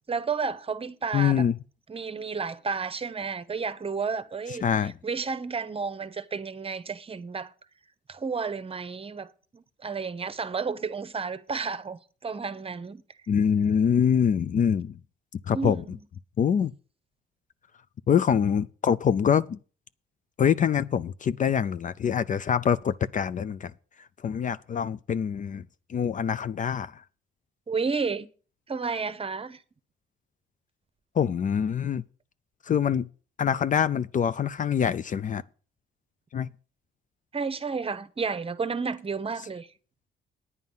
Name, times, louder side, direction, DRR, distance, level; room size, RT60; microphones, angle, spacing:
voice 1, 0.1-1.5 1.9-7.5 8.1-13.0 15.5-16.0 27.7-28.3 28.7-29.6 37.3-39.7, right 5 dB, 30° right, 0.9 m, -32 dB
voice 2, 1.1-1.6 4.6-4.9 13.3-14.9 15.3-15.8 16.4-16.7 18.1-19.6 20.4-23.7 24.2-25.6 25.9-27.0 31.1-32.0 32.6-33.1 33.4-35.4 36.3-36.5, left 8 dB, 40° left, 0.4 m, -24 dB
9.6 x 9.1 x 5.5 m
cardioid pair, 90°, 20 cm